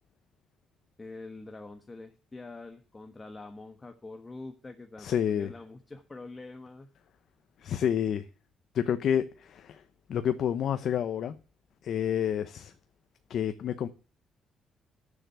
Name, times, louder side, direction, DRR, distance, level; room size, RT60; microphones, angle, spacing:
voice 1, 1.0-6.9, left 3 dB, 20° left, 1.4 m, -45 dB
voice 2, 5.0-5.5 7.6-8.2 8.7-9.8 10.1-11.3 11.8-12.7 13.3-13.9, left 9 dB, 65° left, 0.9 m, -29 dB
10.0 x 7.2 x 6.8 m
cardioid pair, 90°, 0 cm